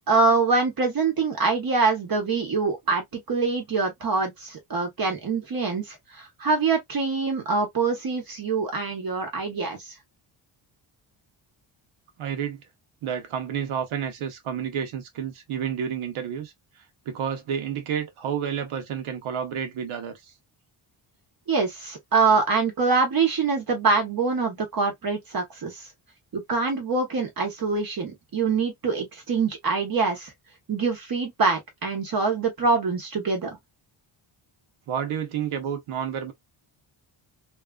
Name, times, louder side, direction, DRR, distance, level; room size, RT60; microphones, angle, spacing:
voice 1, 0.1-9.9 21.5-25.9 26.3-30.3 30.7-33.6, right 4 dB, 45° right, 0.9 m, -24 dB
voice 2, 12.2-12.6 13.0-16.5 17.1-20.2 34.9-36.3, right 8 dB, 85° right, 0.9 m, -30 dB
3.0 x 2.4 x 2.2 m
wide cardioid pair, 145°, 48 cm